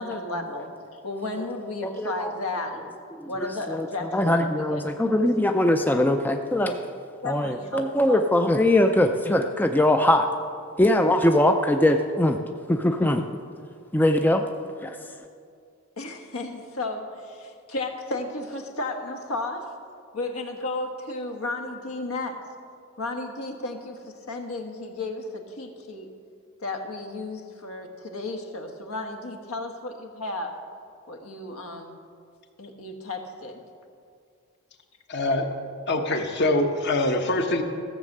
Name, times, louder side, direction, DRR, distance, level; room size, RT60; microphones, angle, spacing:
voice 1, 0.0-2.8 3.3-4.8 7.2-8.3 16.0-19.7 20.1-22.5 23.0-26.1 26.6-30.6 31.1-32.0 32.6-33.6, left 2 dB, 75° left, 4 dB, 1.3 m, -33 dB
voice 2, 1.8-2.3 3.1-6.8 7.2-10.3 10.8-12.4 12.7-13.3 13.9-14.4 14.8-15.0, left 1 dB, 10° left, 5 dB, 0.4 m, -22 dB
voice 3, 35.1-35.5 35.9-37.6, left 2 dB, 50° left, 5 dB, 1.1 m, -24 dB
15.0 x 7.3 x 6.5 m, 2.3 s
head